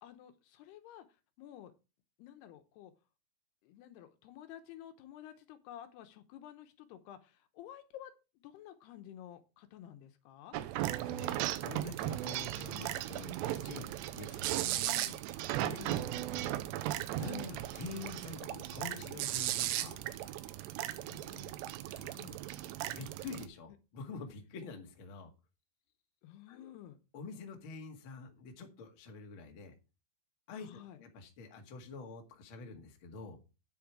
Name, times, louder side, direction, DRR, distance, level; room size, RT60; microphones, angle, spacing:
voice 1, 0.0-1.7 2.2-2.9 3.6-8.1 8.4-10.6 14.6-15.2 21.0-21.6 21.9-22.4 26.2-27.0 30.5-31.0, left 11 dB, 80° left, 8 dB, 2.9 m, -52 dB
sound 1, 10.5-23.5, right 14 dB, 90° right, 2.9 m, -37 dB
voice 2, 10.8-14.6 15.6-16.6 17.1-20.0 21.9-22.0 22.6-25.3 26.5-26.7 27.1-29.7 30.5-33.4, left 4 dB, 45° left, 4 dB, 1.9 m, -47 dB
9.6 x 7.8 x 4.7 m, 0.30 s
omnidirectional pair, 4.8 m